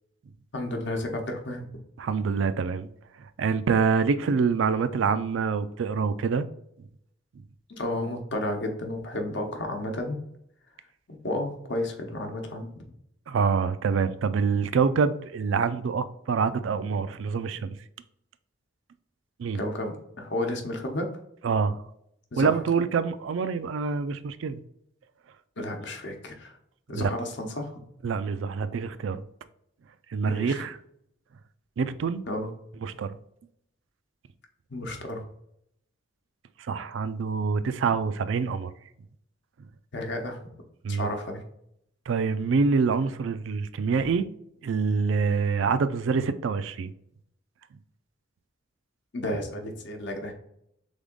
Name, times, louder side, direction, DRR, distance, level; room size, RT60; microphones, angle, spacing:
voice 1, 0.5-1.7 7.7-10.2 11.1-12.7 19.5-21.1 22.3-22.6 25.6-26.5 26.9-27.8 30.2-30.5 32.3-32.5 34.7-35.2 39.9-40.4 40.9-41.4 49.1-50.3, left 1 dB, 65° left, 0.9 m, -32 dB
voice 2, 2.0-2.9 3.4-6.5 13.3-17.8 19.4-19.6 21.4-21.8 22.4-24.6 26.9-27.1 28.0-29.2 30.1-30.8 31.8-32.2 32.8-33.1 36.7-38.7 40.8-41.1 42.1-44.3 44.6-46.9, right 5 dB, 75° right, 0.4 m, -26 dB
3.6 x 3.5 x 3.7 m
head